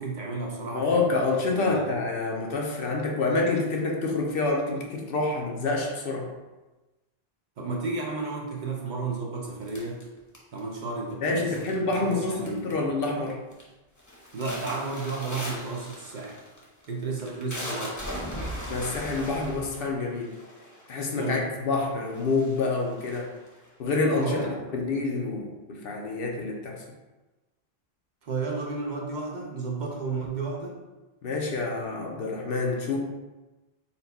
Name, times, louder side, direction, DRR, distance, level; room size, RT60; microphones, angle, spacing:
voice 1, 0.0-1.2 1.5-1.8 7.6-10.0 10.5-12.8 14.3-16.4 16.9-18.0 21.1-21.4 24.1-24.7 28.2-30.8, right 3 dB, 55° right, -1 dB, 0.7 m, -32 dB
voice 2, 0.7-6.3 11.2-13.4 18.7-20.3 20.9-23.3 23.8-26.8 31.2-33.0, left 3 dB, 70° left, 0 dB, 0.8 m, -27 dB
sound 1, 9.7-10.8 11.5-12.1 12.4-12.9 13.3-13.6 14.0-21.0 21.7-21.8 22.1-23.7, equal, 20° left, 0.8 m, -38 dB
4.2 x 2.2 x 4.0 m, 1.1 s
omnidirectional pair, 1.0 m